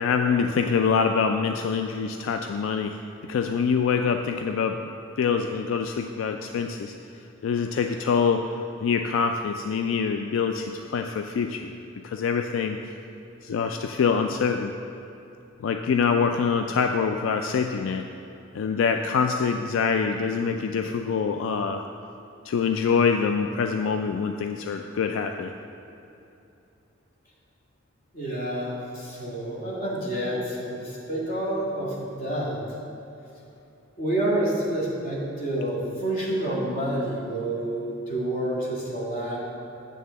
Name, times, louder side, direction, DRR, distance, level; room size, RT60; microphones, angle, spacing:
voice 1, 0.0-3.0 3.3-4.8 5.2-6.9 7.4-8.5 8.8-11.8 12.0-12.8 13.4-14.7 15.6-18.1 18.5-21.8 22.5-25.5, left 6 dB, 85° left, 5 dB, 0.3 m, -25 dB
voice 2, 28.1-32.6 34.0-39.4, right 1 dB, 50° left, -5 dB, 1.8 m, -28 dB
8.8 x 3.7 x 6.8 m, 2.8 s
head